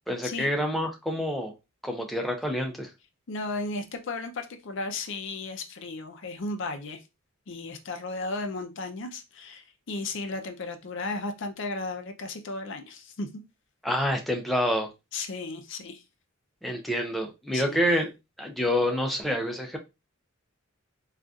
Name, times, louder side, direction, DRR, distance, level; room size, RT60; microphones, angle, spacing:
voice 1, 0.1-1.5 1.8-2.9 13.8-14.9 16.6-18.1 18.4-19.8, equal, ahead, 0.4 m, -27 dB
voice 2, 3.3-7.0 7.5-13.3 15.1-16.0 17.5-17.9, left 3 dB, 55° left, 0.5 m, -35 dB
3.8 x 2.4 x 2.3 m
head